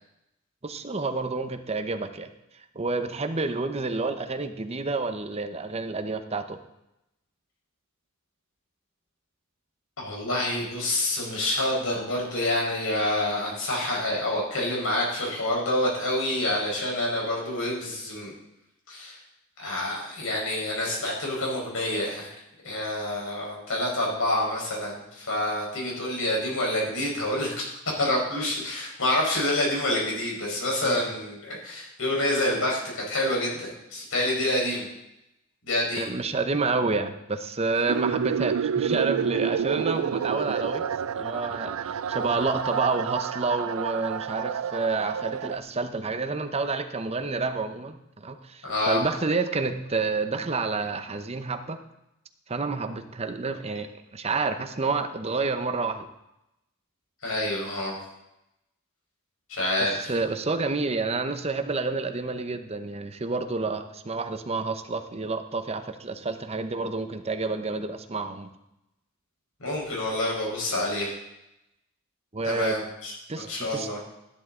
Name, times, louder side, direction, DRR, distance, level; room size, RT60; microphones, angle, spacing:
voice 1, 0.6-2.3 2.7-6.6 30.8-31.0 36.0-40.8 41.2-51.8 52.5-56.1 60.0-68.5 72.3-72.7 73.3-73.9, right 3 dB, 30° right, 8 dB, 0.8 m, -29 dB
voice 2, 10.0-18.3 18.9-19.2 19.6-22.3 22.6-27.7 28.0-34.8 35.6-36.1 48.6-49.0 57.2-58.0 59.5-60.1 69.6-71.1 72.4-74.0, left 1 dB, 70° left, -2 dB, 4.7 m, -27 dB
sound 1, 37.9-45.6, right 7 dB, 90° right, 0.4 m, -29 dB
13.5 x 11.5 x 3.8 m, 0.88 s
head